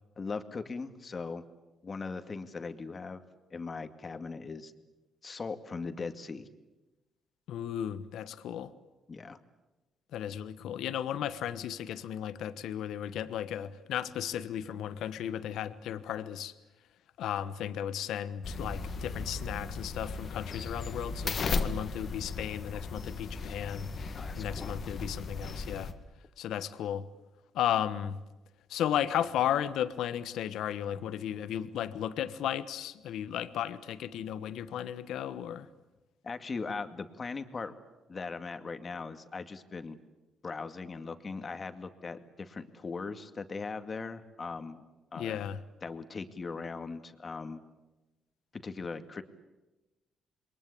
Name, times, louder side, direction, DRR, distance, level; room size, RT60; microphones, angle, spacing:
voice 1, 0.2-1.5 1.8-3.2 3.5-4.7 5.2-6.5 9.1-9.4 24.1-24.8 36.2-37.7 38.1-40.0 40.4-44.8 45.1-45.4 45.8-47.6 48.5-49.2, left 4 dB, 35° left, 9 dB, 2.2 m, -39 dB
voice 2, 7.5-8.7 10.1-16.5 17.2-23.9 24.4-25.9 26.4-27.1 27.5-28.2 28.7-35.7 45.1-45.6, left 10 dB, 80° left, 13 dB, 1.2 m, -34 dB
sound 1, 18.4-25.9, left 4 dB, 50° left, 2.1 m, -36 dB
28.0 x 22.5 x 8.6 m, 1.1 s
cardioid pair, 90°, 0 cm